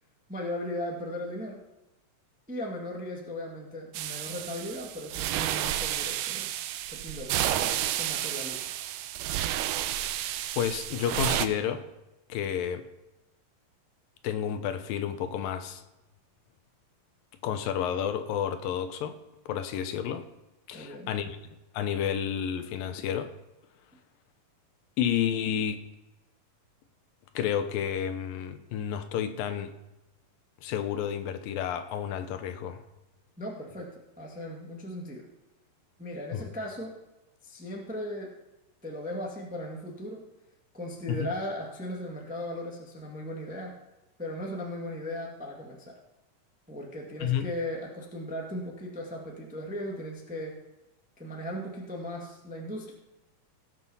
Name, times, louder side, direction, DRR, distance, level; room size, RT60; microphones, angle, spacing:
voice 1, 0.3-1.6 2.5-6.5 6.9-8.6 20.7-21.1 33.4-35.2 36.0-36.9 37.4-38.3 38.8-40.2 40.7-43.7 44.2-46.0 46.7-50.6 51.2-52.9, left 1 dB, 5° right, -1 dB, 0.7 m, -37 dB
sound 1, 3.9-11.5, right 12 dB, 85° right, 2.2 m, -31 dB
voice 2, 10.6-11.9 12.3-12.8 14.2-15.8 17.4-19.1 19.5-20.2 20.7-21.4 21.7-23.3 25.0-25.8 27.4-29.7 30.6-32.8 36.3-36.4 41.1-41.3 47.2-47.5, left 9 dB, 90° left, 9 dB, 2.6 m, -30 dB
17.0 x 6.3 x 5.6 m, 0.98 s
omnidirectional pair, 3.9 m